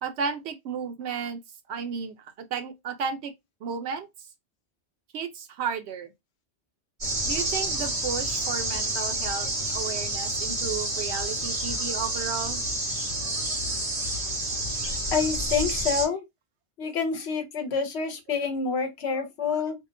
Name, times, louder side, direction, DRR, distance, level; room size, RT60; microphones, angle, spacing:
voice 1, 0.0-1.4 1.7-3.3 3.6-4.1 5.1-6.1 7.2-12.6, right 6 dB, 75° right, 0.9 m, -33 dB
sound 1, 7.0-16.1, right 1 dB, 45° right, 1.3 m, -29 dB
voice 2, 15.1-16.2 16.8-19.8, left 5 dB, 75° left, 0.9 m, -27 dB
2.8 x 2.1 x 2.4 m
omnidirectional pair, 1.1 m